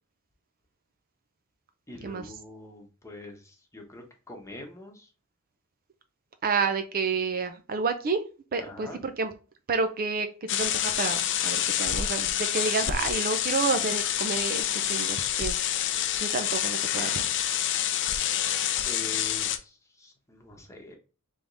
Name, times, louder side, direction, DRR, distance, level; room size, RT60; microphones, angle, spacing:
voice 1, 1.9-5.1 8.5-9.0 18.8-21.0, left 2 dB, 15° left, 2 dB, 1.1 m, -44 dB
voice 2, 6.4-8.2 8.5-9.3 9.7-15.6 16.2-17.2, right 4 dB, 40° right, 8 dB, 0.5 m, -30 dB
sound 1, 10.5-19.6, left 10 dB, 55° left, 0.5 m, -27 dB
3.5 x 3.5 x 3.9 m, 0.34 s
head